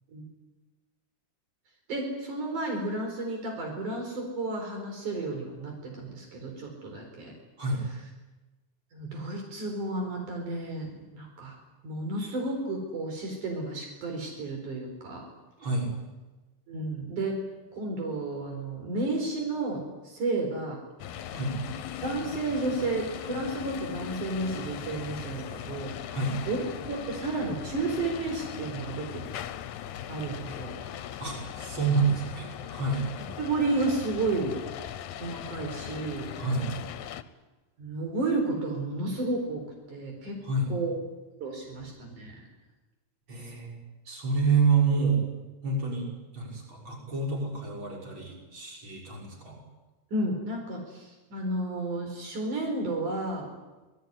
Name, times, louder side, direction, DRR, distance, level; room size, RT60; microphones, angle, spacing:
voice 1, 1.9-7.3 8.9-11.6 11.8-15.3 16.7-17.4 17.7-20.8 22.0-25.9 26.5-29.2 30.1-30.8 33.4-34.6 35.2-36.3 37.8-40.4 40.7-41.0 41.4-42.4 50.1-53.5, right 2 dB, 70° right, 2 dB, 5.9 m, -32 dB
sound 1, 21.0-37.2, left 10 dB, 70° left, 2.3 m, -39 dB
voice 2, 31.2-33.1 36.4-36.7 40.4-40.7 43.3-43.8 44.1-45.2 45.6-46.1 46.3-49.6, right 4 dB, 35° right, -1 dB, 6.6 m, -28 dB
26.5 x 20.0 x 9.7 m, 1.2 s
omnidirectional pair, 3.7 m